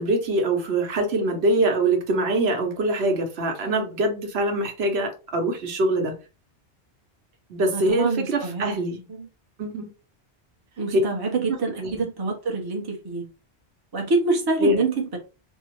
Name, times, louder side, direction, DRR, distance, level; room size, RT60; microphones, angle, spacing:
voice 1, 0.0-6.1 7.5-9.0 9.6-9.9 10.9-11.0 11.8-12.0 14.6-14.7, right 1 dB, 70° right, 1.0 m, -23 dB
voice 2, 7.7-8.8 9.1-9.3 10.8-13.3 13.9-15.2, right 3 dB, 25° right, 0.6 m, -26 dB
3.6 x 2.0 x 2.9 m
omnidirectional pair, 1.1 m